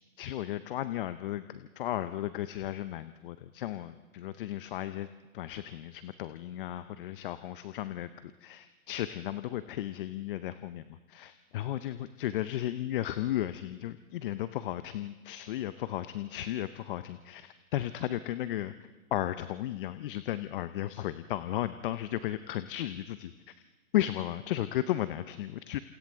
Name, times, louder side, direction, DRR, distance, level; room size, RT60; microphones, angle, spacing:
voice 1, 0.2-5.1 5.3-10.8 11.1-18.7 19.1-23.6 23.9-25.8, left 13 dB, 40° left, 13 dB, 0.6 m, -34 dB
29.0 x 27.5 x 3.6 m, 1.2 s
hypercardioid pair, 130°, 44 cm